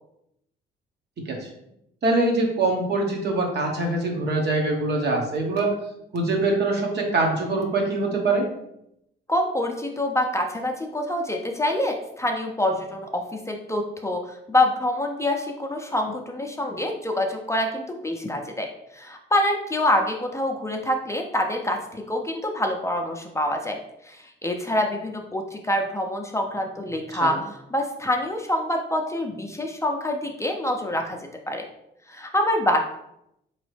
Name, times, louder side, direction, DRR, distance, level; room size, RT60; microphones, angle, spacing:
voice 1, 1.2-1.5 2.0-5.8 6.1-8.5 27.1-27.4, right 2 dB, 60° right, 1 dB, 1.0 m, -23 dB
voice 2, 9.3-18.7 18.9-23.8 24.0-31.2 31.5-31.7 32.1-32.8, left 1 dB, 15° left, 2 dB, 0.5 m, -26 dB
3.9 x 3.0 x 3.2 m, 0.80 s
cardioid pair, 90°, 20 cm